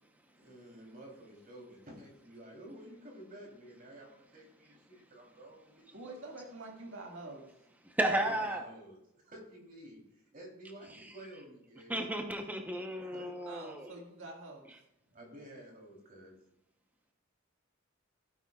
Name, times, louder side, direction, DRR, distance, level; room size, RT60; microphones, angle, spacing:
voice 1, 0.4-6.4 8.2-12.0 13.0-13.3 15.1-16.4, right 1 dB, 45° right, -1 dB, 3.3 m, -52 dB
voice 2, 5.9-7.5 13.5-14.7, right 2 dB, 65° right, -1 dB, 1.9 m, -46 dB
voice 3, 7.9-8.6 11.9-13.9, right 1 dB, 10° right, 3 dB, 0.8 m, -33 dB
16.5 x 9.1 x 2.4 m, 0.81 s
head